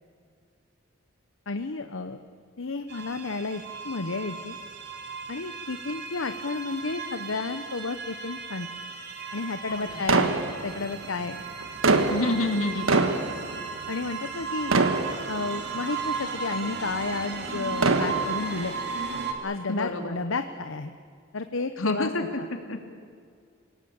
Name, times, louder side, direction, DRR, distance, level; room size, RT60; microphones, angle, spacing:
voice 1, 1.5-2.2 2.6-4.6 5.3-8.7 9.3-10.3 10.6-11.4 13.9-14.7 15.3-18.7 19.4-20.9 21.3-22.1, left 3 dB, 70° left, 8 dB, 0.9 m, -32 dB
sound 1, 2.9-19.3, right 5 dB, 55° right, 2.9 m, -36 dB
voice 2, 9.7-10.0 12.1-13.0 19.7-20.2 21.8-22.4 22.7-22.8, left 2 dB, 85° left, 5 dB, 2.7 m, -28 dB
sound 2, 10.1-11.1 11.6-14.4 14.7-15.8 16.4-16.5 17.6-18.6, right 3 dB, 90° right, 1.6 m, -25 dB
28.0 x 17.5 x 8.7 m, 2.1 s
head